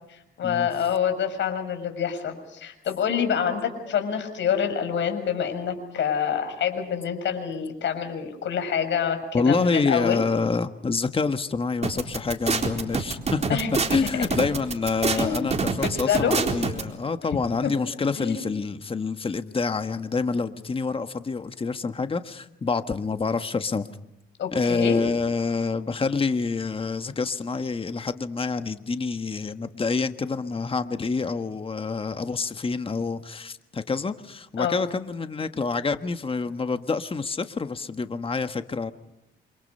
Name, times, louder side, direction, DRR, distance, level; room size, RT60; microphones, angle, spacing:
voice 1, 0.1-10.2 13.5-13.7 15.1-16.4 17.6-17.7 18.2-18.4 24.4-25.0 34.6-34.8, left 7 dB, 65° left, 7 dB, 6.5 m, -27 dB
voice 2, 9.3-13.6 13.9-23.9 24.5-38.9, left 4 dB, 25° left, 9 dB, 1.5 m, -27 dB
sound 1, 11.8-16.8, right 4 dB, 35° right, 4.0 m, -25 dB
28.5 x 27.0 x 5.6 m, 0.85 s
cardioid pair, 90°, 20 cm